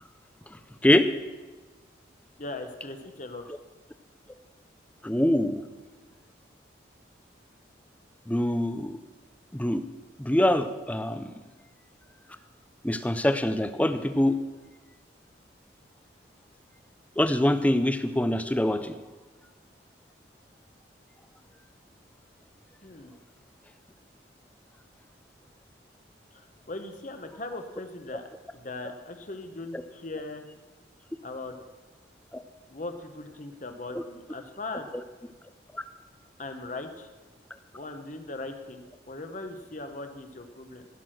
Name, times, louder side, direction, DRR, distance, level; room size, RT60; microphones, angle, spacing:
voice 1, 2.4-3.4 22.8-23.2 26.3-28.2 28.5-30.4 31.2-31.6 32.7-34.8 36.4-37.1 37.7-40.9, left 2 dB, 40° left, 7 dB, 1.0 m, -39 dB
voice 2, 5.0-5.6 8.3-9.0 9.5-9.8 10.2-11.3 12.8-14.3 17.2-18.9 33.9-34.0, left 1 dB, 10° left, 10 dB, 0.5 m, -24 dB
15.5 x 6.2 x 6.3 m, 1.3 s
head